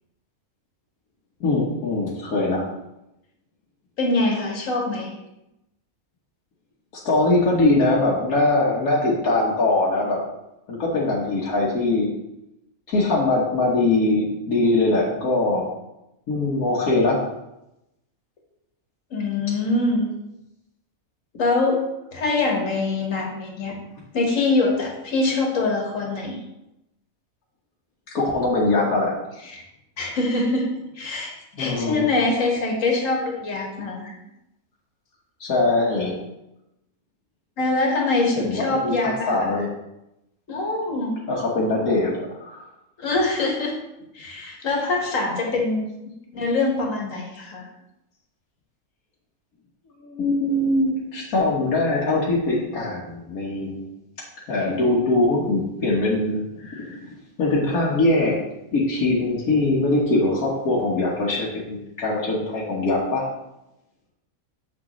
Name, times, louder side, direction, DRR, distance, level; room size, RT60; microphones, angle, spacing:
voice 1, 1.4-2.7 7.1-10.2 10.7-12.1 12.9-15.7 16.3-17.2 28.1-29.1 31.6-32.1 35.4-36.1 38.4-39.7 41.3-42.1 42.4-42.6 50.0-53.9 54.5-57.0 57.4-58.4 58.7-63.3, left 2 dB, 80° left, -4 dB, 1.6 m, -22 dB
voice 2, 4.0-5.1 19.1-20.1 21.4-21.8 22.1-23.7 24.1-26.4 29.5-29.6 30.0-30.7 31.0-34.1 37.6-39.5 40.5-41.2 43.0-43.8 44.1-45.9 46.3-47.7, left 3 dB, 65° left, -1 dB, 1.8 m, -24 dB
6.9 x 6.3 x 3.0 m, 0.88 s
omnidirectional pair, 1.5 m